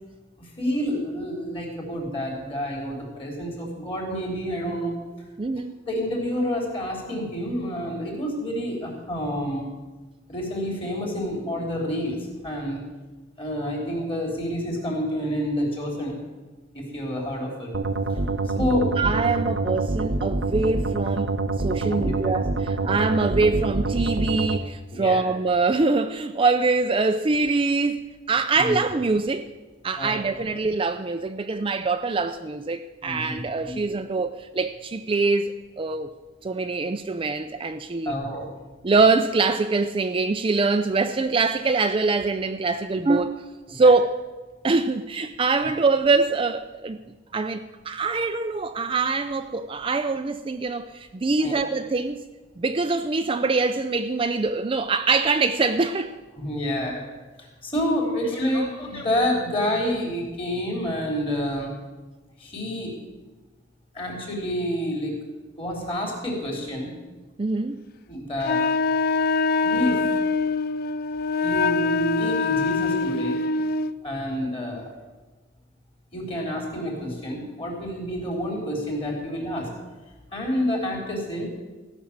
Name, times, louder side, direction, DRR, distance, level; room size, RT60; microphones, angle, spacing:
voice 1, 0.4-4.9 5.9-9.7 10.3-12.8 13.4-16.2 16.7-17.7 18.1-18.9 21.8-22.1 22.8-22.9 24.9-25.2 28.5-28.8 30.0-30.1 33.0-33.8 38.1-38.5 43.8-43.9 51.4-51.5 56.4-57.0 57.4-61.7 62.4-62.9 63.9-65.1 65.6-66.9 68.1-68.6 69.6-70.2 71.4-73.4 74.0-74.9 76.1-79.7 80.3-81.5, equal, 30° left, 3.7 m, -28 dB
voice 2, 5.4-5.7 18.6-29.5 29.8-36.1 36.4-38.2 38.8-43.4 43.7-44.2 44.6-47.0 47.3-52.2 52.6-56.1 67.4-67.8, right 3 dB, 30° right, 0.4 m, -24 dB
sound 1, 17.7-24.6, right 3 dB, 75° right, 0.8 m, -26 dB
Wind instrument woodwind instrument, 68.4-74.0, left 4 dB, 55° left, 0.3 m, -24 dB
15.0 x 6.3 x 8.6 m
head